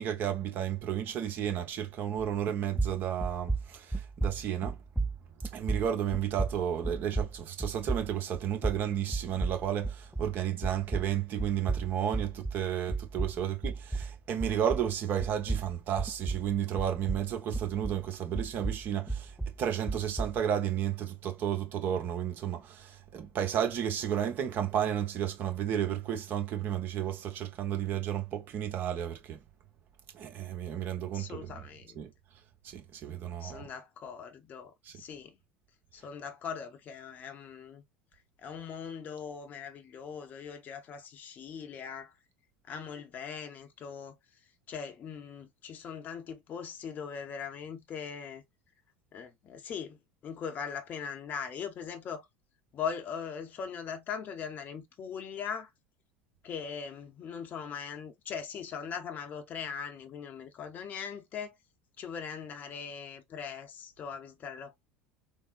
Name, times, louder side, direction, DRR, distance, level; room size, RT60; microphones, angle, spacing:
voice 1, 0.0-4.8 5.5-19.3 19.6-29.4 30.1-31.6 32.0-32.1 32.6-33.7 34.9-35.0, right 9 dB, 45° right, 0.9 m, -32 dB
sound 1, 2.2-2.5 2.7-10.4 10.6-14.9 15.2-18.1 18.3-20.4, right 3 dB, ahead, 0.4 m, -34 dB
voice 2, 31.1-32.0 33.4-35.4 35.9-37.8 38.4-42.1 42.7-44.2 44.7-48.4 49.1-50.0 50.2-52.3 52.7-55.7 56.4-61.5 62.0-64.8, left 6 dB, 35° left, 0.6 m, -40 dB
3.6 x 2.0 x 2.4 m
figure-of-eight pair, 75°, 5 cm